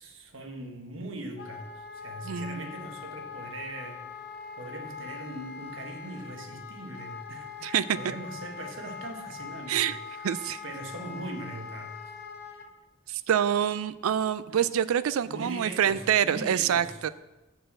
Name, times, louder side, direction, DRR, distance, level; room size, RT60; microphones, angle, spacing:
voice 1, 0.0-4.0 4.6-10.3 10.6-12.0 14.5-14.6 15.2-17.0, right 2 dB, 60° right, 3 dB, 1.4 m, -40 dB
Wind instrument woodwind instrument, 1.4-12.7, left 6 dB, 45° left, 1.1 m, -42 dB
voice 2, 2.2-2.6 7.6-8.0 9.7-10.0 10.2-10.6 13.1-17.1, right 9 dB, 80° right, 15 dB, 0.4 m, -26 dB
6.8 x 6.7 x 7.6 m, 1.0 s
head